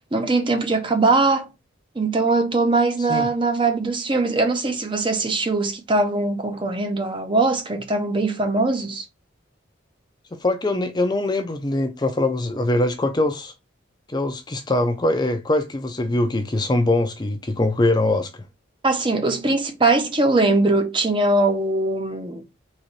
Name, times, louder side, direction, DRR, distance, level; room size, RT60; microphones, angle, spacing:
voice 1, 0.1-1.5 2.0-9.0 18.8-22.4, right 3 dB, 25° right, 0.6 m, -21 dB
voice 2, 10.4-13.5 14.1-18.4, left 2 dB, 20° left, 0.5 m, -22 dB
4.0 x 3.0 x 3.1 m
head